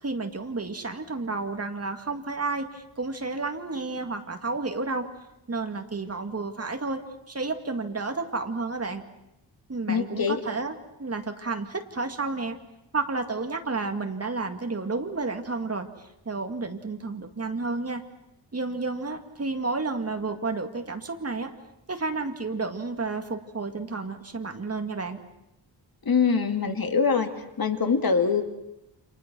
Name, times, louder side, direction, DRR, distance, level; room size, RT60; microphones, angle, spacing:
voice 1, 0.0-5.1 5.5-7.0 7.3-9.0 9.7-10.7 11.0-12.6 12.9-18.0 18.5-21.5 21.9-25.2, right 3 dB, 30° right, 5 dB, 2.1 m, -31 dB
voice 2, 9.9-10.4 26.0-27.3 27.6-28.4, left 5 dB, 50° left, 6 dB, 2.3 m, -23 dB
29.5 x 27.0 x 6.2 m, 0.85 s
wide cardioid pair, 155°, 45 cm